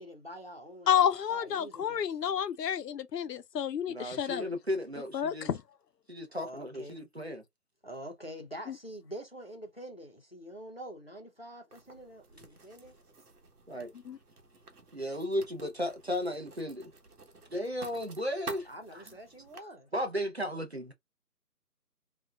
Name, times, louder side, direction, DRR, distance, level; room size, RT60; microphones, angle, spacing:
voice 1, 0.0-2.1 6.3-7.0 7.8-12.9 18.7-19.9, right 1 dB, 40° left, 0.5 m, -46 dB
voice 2, 0.9-4.5 5.1-5.6 8.7-8.8 14.1-14.2, left 9 dB, 90° left, 0.6 m, -30 dB
voice 3, 3.9-5.5 6.1-7.4 13.7-13.9 14.9-16.9 17.5-19.0 19.9-20.9, equal, 45° right, 0.6 m, -35 dB
Writing, 11.7-19.6, right 3 dB, 70° right, 1.2 m, -50 dB
3.7 x 2.3 x 2.3 m
figure-of-eight pair, 180°, 47 cm